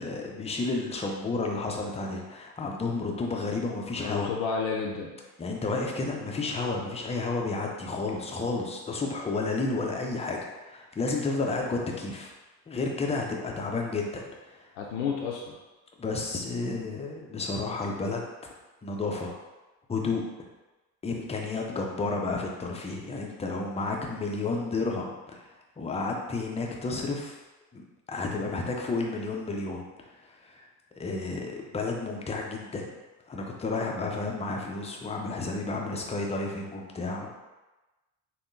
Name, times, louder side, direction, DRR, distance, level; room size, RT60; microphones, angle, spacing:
voice 1, 0.0-4.3 5.4-12.3 12.7-14.2 14.5-14.6 16.0-18.2 18.8-19.3 19.9-20.2 21.0-25.5 25.8-27.3 27.7-27.8 28.1-29.8 30.2-30.7 31.0-32.9 33.3-37.3, left 3 dB, 15° left, 0 dB, 0.5 m, -31 dB
voice 2, 4.0-5.1 14.8-15.6, left 5 dB, 70° left, -1 dB, 0.6 m, -31 dB
3.5 x 2.3 x 2.6 m, 1.1 s
hypercardioid pair, 65°, 42 cm